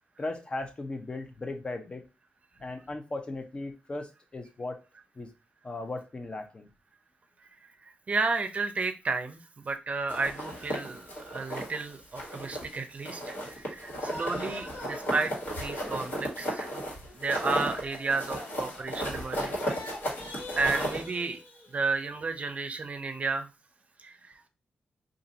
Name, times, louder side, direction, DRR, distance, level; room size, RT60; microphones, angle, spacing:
voice 1, 0.2-2.0 2.6-4.8 5.2-5.3 5.6-6.7, left 2 dB, 30° left, 6 dB, 0.7 m, -37 dB
voice 2, 7.8-16.8 17.1-19.6 20.6-21.4 21.7-23.5 24.0-24.5, right 4 dB, 40° right, 8 dB, 0.6 m, -32 dB
sound 1, 10.1-11.8 12.2-12.8 13.0-21.0, equal, 65° left, 1.7 m, -35 dB
sound 2, 13.8-19.2 19.5-22.0, left 1 dB, 90° left, 0.9 m, -45 dB
2.6 x 2.5 x 3.9 m, 0.29 s
cardioid pair, 90°, 3 cm